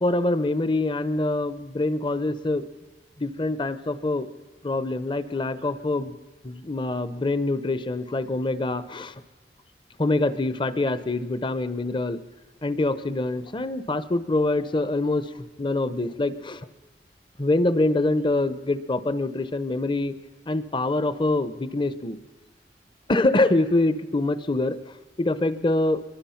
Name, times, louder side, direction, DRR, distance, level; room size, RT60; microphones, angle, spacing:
voice 1, 0.0-2.6 3.2-4.3 4.6-6.2 6.4-9.1 10.0-12.2 12.6-15.3 15.6-16.6 17.4-20.1 20.5-22.2 23.1-24.8 25.2-26.0, left 2 dB, 30° left, 14 dB, 0.8 m, -25 dB
24.0 x 22.0 x 5.8 m, 1.3 s
head